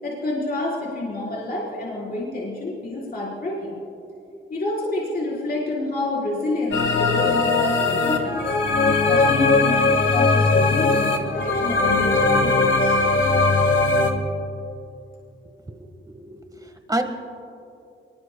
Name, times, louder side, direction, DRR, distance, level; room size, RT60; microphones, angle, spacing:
voice 1, 0.0-3.8 4.5-8.4 9.1-13.0, left 2 dB, 50° left, -5 dB, 4.4 m, -28 dB
sound 1, 6.7-14.1, left 3 dB, 70° left, 1.7 m, -19 dB
voice 2, 16.1-17.0, right 1 dB, 20° right, 5 dB, 1.6 m, -28 dB
28.0 x 22.0 x 2.3 m, 2.7 s
wide cardioid pair, 120°, 21 cm